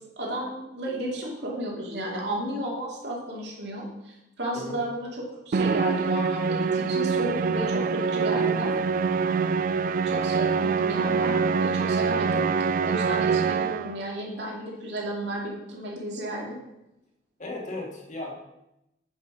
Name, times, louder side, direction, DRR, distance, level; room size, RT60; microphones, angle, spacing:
voice 1, 0.2-8.7 10.0-16.6, right 1 dB, 70° right, -2 dB, 2.8 m, -33 dB
Musical instrument, 5.5-14.0, right 5 dB, 50° right, 0.3 m, -25 dB
voice 2, 17.4-18.4, left 2 dB, 45° left, 0 dB, 2.1 m, -36 dB
9.8 x 5.6 x 6.2 m, 0.89 s
head